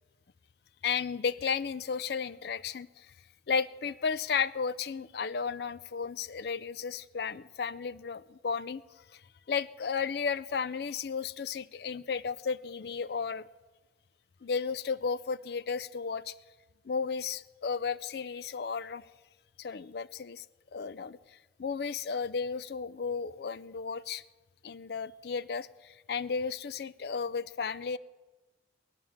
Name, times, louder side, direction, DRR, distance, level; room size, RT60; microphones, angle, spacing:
voice 1, 0.8-3.1 3.5-8.8 9.1-9.2 9.5-13.5 14.4-16.3 16.9-19.0 19.6-20.4 20.7-21.2 21.6-24.2 24.6-28.0, left 5 dB, 55° left, 17 dB, 0.4 m, -33 dB
17.0 x 11.5 x 7.1 m, 1.2 s
head